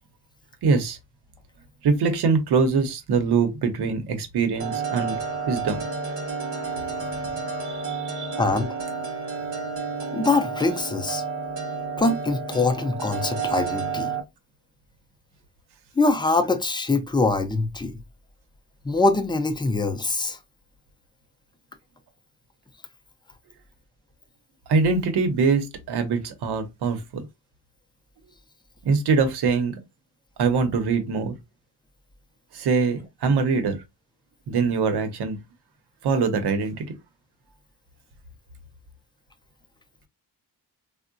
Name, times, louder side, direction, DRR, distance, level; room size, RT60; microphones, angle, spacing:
voice 1, 0.6-1.0 1.8-5.2 5.5-5.8 7.6-8.4 24.7-27.3 28.8-29.8 30.4-31.3 32.5-33.8 34.5-35.4 36.0-36.9, right 4 dB, 70° right, 0.8 m, -23 dB
sound 1, 4.6-14.2, right 5 dB, 35° right, 0.8 m, -30 dB
voice 2, 8.4-8.7 10.1-11.2 12.0-14.1 16.0-17.9 18.8-20.4, left 3 dB, 10° left, 0.4 m, -23 dB
3.6 x 2.1 x 2.5 m
cardioid pair, 115°, 41 cm